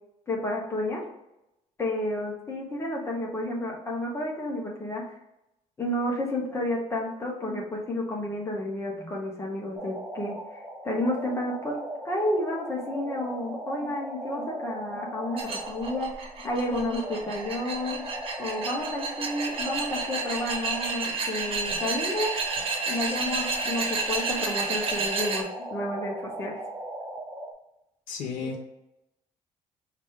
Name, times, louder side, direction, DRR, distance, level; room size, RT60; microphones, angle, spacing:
voice 1, 0.3-1.0 1.8-5.0 5.8-10.3 10.8-11.8 12.0-15.4 15.7-18.0 18.4-22.3 22.9-26.6 28.4-28.5, left 1 dB, 20° left, -1 dB, 1.0 m, -31 dB
sound 1, 9.7-27.5, right 1 dB, 5° right, 0.5 m, -39 dB
sound 2, 15.4-25.4, right 4 dB, 40° right, 0.8 m, -31 dB
voice 2, 28.1-28.6, left 5 dB, 75° left, 2 dB, 0.9 m, -33 dB
5.0 x 2.9 x 3.6 m, 0.88 s
cardioid pair, 170°, 14 cm